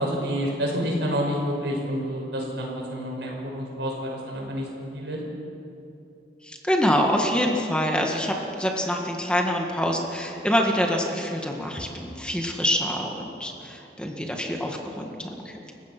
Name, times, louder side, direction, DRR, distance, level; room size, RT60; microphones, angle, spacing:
voice 1, 0.0-4.7 4.9-5.2, equal, 75° right, -1 dB, 5.9 m, -28 dB
voice 2, 6.5-15.7, equal, 5° left, 1 dB, 1.7 m, -26 dB
29.0 x 16.0 x 6.0 m, 2.8 s
head